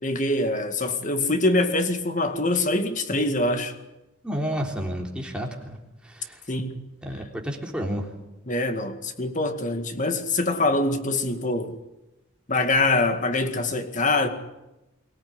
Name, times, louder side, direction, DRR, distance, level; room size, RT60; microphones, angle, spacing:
voice 1, 0.0-3.7 6.5-6.9 8.5-11.8 12.5-14.3, left 2 dB, 40° left, 2.1 m, -24 dB
voice 2, 4.2-5.8 6.0-6.4 7.0-8.1, equal, 5° right, 3.7 m, -30 dB
24.0 x 18.0 x 9.7 m
head